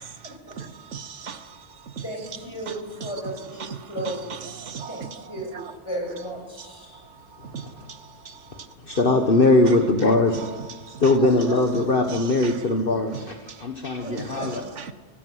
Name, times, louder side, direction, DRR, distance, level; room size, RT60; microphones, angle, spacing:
voice 1, 0.0-2.0 2.7-3.1 3.6-5.7 6.6-6.7 6.9-8.7 9.7-9.8 10.3-11.1 11.7-11.8 12.1-12.6 13.1-13.6 13.9-14.9, right 6 dB, 85° right, 1.5 m, -39 dB
voice 2, 2.0-4.4 4.9-7.0 11.2-11.6 14.0-14.7, right 1 dB, 25° left, 7.4 m, -34 dB
voice 3, 8.9-10.5 11.0-14.6, left 2 dB, 50° left, 1.7 m, -20 dB
22.5 x 16.0 x 9.5 m
omnidirectional pair, 1.2 m